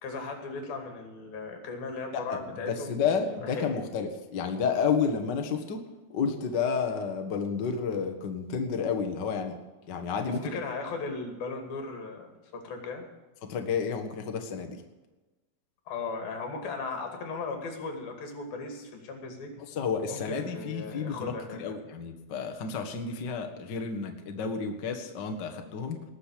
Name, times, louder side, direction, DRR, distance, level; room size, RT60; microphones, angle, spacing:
voice 1, 0.0-3.7 10.3-13.0 15.9-19.5 20.1-21.8, left 4 dB, 75° left, 4 dB, 4.1 m, -37 dB
voice 2, 2.7-5.8 6.1-9.6 9.9-10.5 13.4-14.8 19.7-26.0, left 6 dB, 50° left, 4 dB, 1.3 m, -31 dB
19.5 x 6.6 x 8.6 m, 1.2 s
omnidirectional pair, 4.2 m